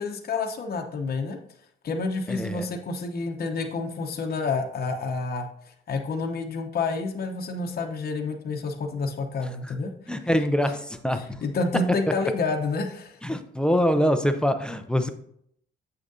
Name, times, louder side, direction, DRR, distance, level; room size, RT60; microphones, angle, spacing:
voice 1, 0.0-1.4 1.8-5.5 5.9-9.9 11.1-13.2, left 3 dB, 50° left, 3 dB, 0.9 m, -29 dB
voice 2, 2.3-2.7 9.6-9.7 10.1-11.2 13.2-15.1, equal, 5° left, 8 dB, 0.6 m, -24 dB
7.5 x 6.3 x 2.7 m, 0.67 s
cardioid pair, 90°, 20 cm